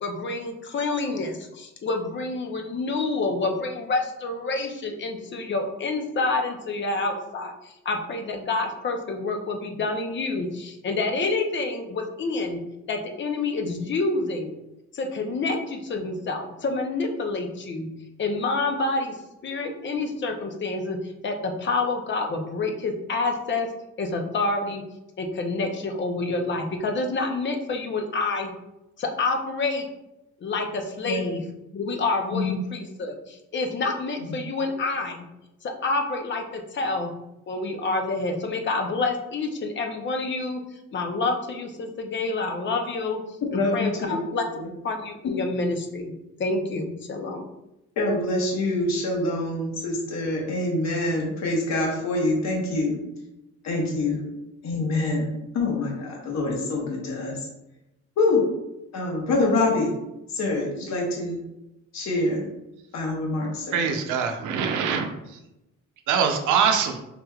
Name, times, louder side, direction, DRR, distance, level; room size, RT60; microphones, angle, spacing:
voice 1, 0.0-12.6 12.9-14.5 14.9-17.9 18.2-19.2 19.4-21.0 21.2-23.7 24.0-24.8 25.2-28.5 29.0-29.9 30.4-31.4 31.7-35.2 35.6-37.1 37.5-40.6 40.9-43.2 43.5-44.0 44.3-44.5 44.8-46.1 46.4-47.4, left 3 dB, 40° left, 4 dB, 0.7 m, -28 dB
voice 2, 32.3-32.6 43.5-44.2 44.5-44.7 48.0-53.0 53.6-54.2 54.6-55.3 55.5-57.4 58.2-58.4 58.9-59.9 60.3-61.4 61.9-62.4 62.9-63.8, left 2 dB, 65° left, -1 dB, 1.2 m, -25 dB
voice 3, 63.7-65.4 66.1-67.0, right 6 dB, 90° right, 5 dB, 0.6 m, -24 dB
5.0 x 3.2 x 2.3 m, 0.91 s
cardioid pair, 125°, 29 cm